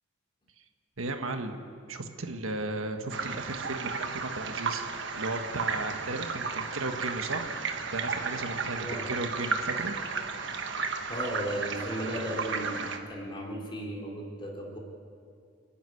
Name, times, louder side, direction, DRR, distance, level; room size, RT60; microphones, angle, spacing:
voice 1, 1.0-1.6 1.9-4.8 5.1-7.5 7.9-9.9, right 2 dB, 80° right, 6 dB, 1.5 m, -35 dB
sound 1, 3.1-13.0, right 5 dB, 60° right, 1.4 m, -34 dB
voice 2, 11.1-14.8, equal, 25° left, -1 dB, 3.6 m, -35 dB
29.0 x 10.0 x 9.9 m, 2.3 s
head